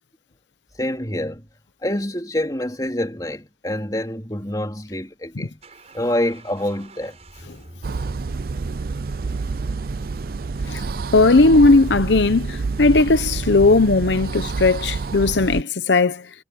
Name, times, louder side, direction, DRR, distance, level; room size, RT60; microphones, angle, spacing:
voice 1, 0.8-1.4 1.8-5.6 5.9-7.2 10.7-10.8, left 1 dB, 20° left, 3.3 m, -26 dB
sound 1, 4.6-12.5, right 1 dB, 35° right, 7.0 m, -46 dB
sound 2, 7.8-15.6, right 4 dB, 55° right, 0.4 m, -28 dB
voice 2, 11.1-16.3, left 3 dB, 85° left, 0.8 m, -17 dB
head